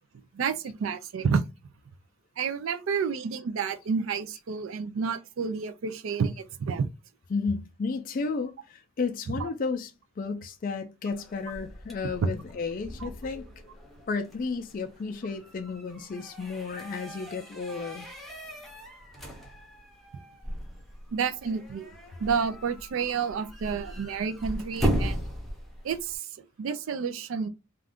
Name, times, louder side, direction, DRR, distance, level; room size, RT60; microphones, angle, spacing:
voice 1, 0.3-1.4 2.4-6.9 9.3-9.5 12.2-12.3 13.0-13.1 21.1-21.9 22.2-25.2 25.8-26.3 26.6-27.5, right 6 dB, 75° right, 0.4 m, -30 dB
voice 2, 7.3-9.9 10.2-13.4 14.1-18.1, left 4 dB, 40° left, 0.4 m, -32 dB
sound 1, 11.1-26.2, equal, ahead, 0.6 m, -37 dB
2.5 x 2.3 x 3.5 m
head